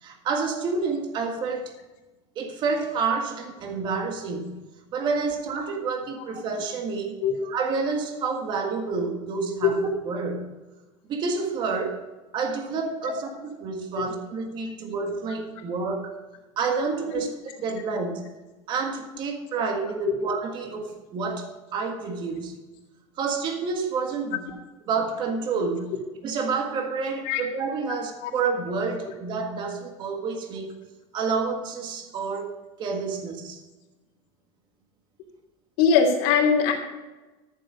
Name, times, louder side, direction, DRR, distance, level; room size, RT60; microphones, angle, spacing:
voice 1, 0.0-1.7 2.3-4.6 4.9-10.5 11.1-12.0 12.3-16.1 16.6-18.2 18.7-22.5 23.2-24.6 24.9-25.9 26.2-30.7 31.1-33.6, right 4 dB, 35° right, 4 dB, 1.7 m, -29 dB
voice 2, 35.8-36.7, left 6 dB, 60° left, 1 dB, 2.9 m, -20 dB
13.0 x 7.2 x 5.4 m, 1.1 s
cardioid pair, 165°, 14 cm